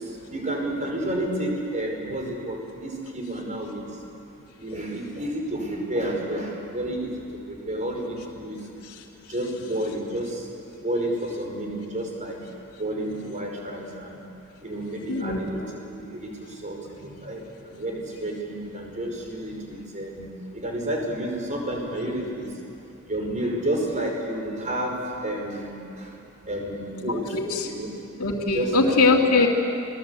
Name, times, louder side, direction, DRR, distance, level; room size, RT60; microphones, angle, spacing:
voice 1, 0.0-3.8 4.6-7.1 7.5-8.6 9.3-10.4 10.8-12.4 12.8-14.2 14.6-15.6 15.9-16.3 16.6-17.4 17.7-20.3 20.5-22.5 23.1-26.1 26.5-27.2 27.6-27.9 28.5-29.5, right 1 dB, 35° right, 1 dB, 5.2 m, -30 dB
voice 2, 15.1-15.7 27.0-27.7 28.2-29.5, left 3 dB, 70° left, -2 dB, 2.6 m, -22 dB
28.5 x 20.5 x 8.4 m, 2.6 s
head